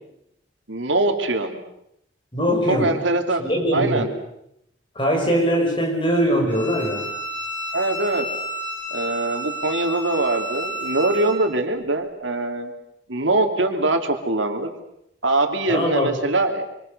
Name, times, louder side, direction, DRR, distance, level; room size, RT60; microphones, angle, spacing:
voice 1, 0.7-1.6 2.7-3.4 3.7-4.1 7.7-8.3 8.9-12.7 13.1-14.7 15.2-16.7, right 2 dB, 80° right, 5 dB, 2.9 m, -22 dB
voice 2, 2.3-3.0 3.4-4.1 4.9-7.1 15.7-16.2, equal, 25° left, 1 dB, 6.6 m, -21 dB
Bowed string instrument, 6.5-11.4, equal, 10° left, 5.8 m, -31 dB
26.5 x 26.0 x 6.8 m, 0.78 s
head